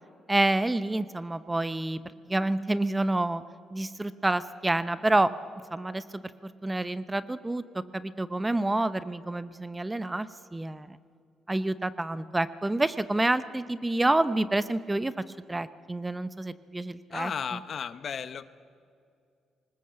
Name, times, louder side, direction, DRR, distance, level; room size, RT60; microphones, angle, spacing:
voice 1, 0.3-2.0 2.3-3.4 3.7-5.3 5.7-7.6 7.9-11.0 11.5-15.1 15.5-17.3, right 2 dB, 15° right, 14 dB, 0.7 m, -28 dB
voice 2, 17.1-18.5, left 7 dB, 55° left, 13 dB, 0.9 m, -34 dB
20.0 x 19.5 x 7.6 m, 2.4 s
cardioid pair, 90°, 0 cm